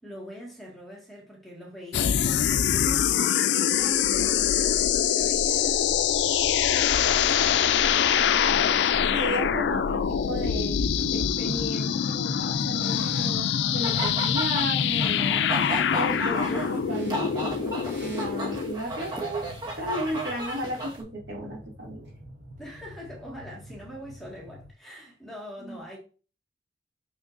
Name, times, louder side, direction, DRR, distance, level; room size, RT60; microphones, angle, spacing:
voice 1, 0.0-6.0 6.7-8.4 22.6-26.0, equal, ahead, 1.8 m, -43 dB
sound 1, 1.9-18.8, left 8 dB, 70° left, 0.4 m, -24 dB
sound 2, 8.5-24.7, equal, 45° right, 0.8 m, -47 dB
voice 2, 9.1-19.5 19.8-22.0 25.6-25.8, equal, 65° right, 2.4 m, -34 dB
sound 3, 13.8-21.0, right 1 dB, 25° right, 1.4 m, -34 dB
6.2 x 6.0 x 2.6 m
head